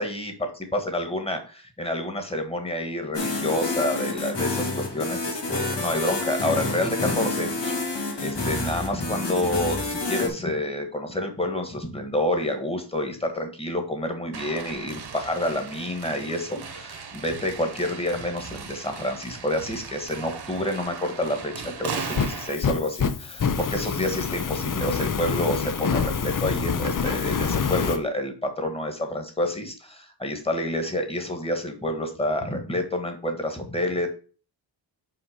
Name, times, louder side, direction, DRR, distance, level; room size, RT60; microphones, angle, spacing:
voice 1, 0.0-7.9 8.2-34.1, left 1 dB, 15° left, 5 dB, 1.6 m, -28 dB
sound 1, 3.1-10.3, left 2 dB, 65° left, 2.4 m, -28 dB
sound 2, 14.3-22.6, right 5 dB, 60° right, 1.2 m, -38 dB
Fire, 21.9-28.0, left 6 dB, 45° left, 0.7 m, -27 dB
5.8 x 5.3 x 5.1 m, 0.38 s
wide cardioid pair, 145°, 45 cm